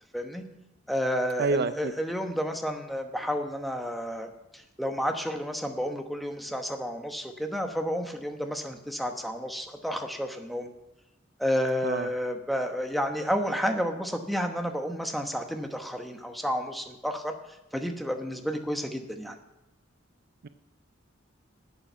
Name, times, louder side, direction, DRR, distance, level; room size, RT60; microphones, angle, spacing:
voice 1, 0.9-10.7 11.4-17.3 17.7-19.4, equal, ahead, 4 dB, 1.1 m, -31 dB
voice 2, 1.4-1.7 11.8-12.1 20.4-20.5, right 4 dB, 55° right, 11 dB, 0.5 m, -26 dB
12.0 x 8.8 x 5.6 m, 0.94 s
head